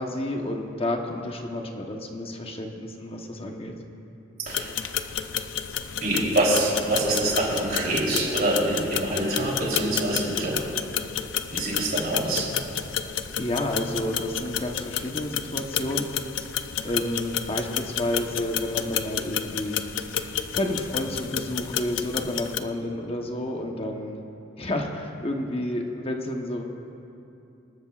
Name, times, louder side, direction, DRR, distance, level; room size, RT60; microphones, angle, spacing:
voice 1, 0.0-3.7 13.4-24.2 24.6-26.6, left 1 dB, 30° left, 2 dB, 1.0 m, -30 dB
voice 2, 4.4-4.7 6.0-10.7 11.5-12.6, right 1 dB, 50° right, -4 dB, 3.4 m, -25 dB
sound 1, 4.5-22.6, left 9 dB, 75° left, 0.5 m, -31 dB
27.0 x 13.0 x 2.5 m, 2.7 s
head